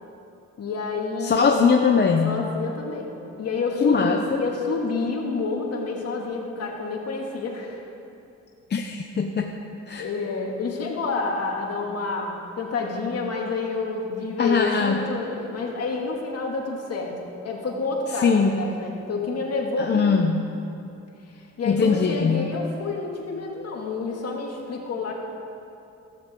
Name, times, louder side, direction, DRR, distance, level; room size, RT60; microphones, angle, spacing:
voice 1, 0.6-1.7 2.2-3.1 3.4-7.8 10.0-17.2 17.4-20.1 21.3-25.1, left 4 dB, 55° left, -1 dB, 2.4 m, -29 dB
voice 2, 1.2-2.4 3.8-4.4 8.7-9.5 9.9-10.1 14.4-15.0 18.2-18.6 19.8-20.5 21.6-22.5, left 5 dB, 35° left, 3 dB, 0.8 m, -21 dB
14.5 x 14.0 x 3.8 m, 2.7 s
cardioid pair, 90°, 30 cm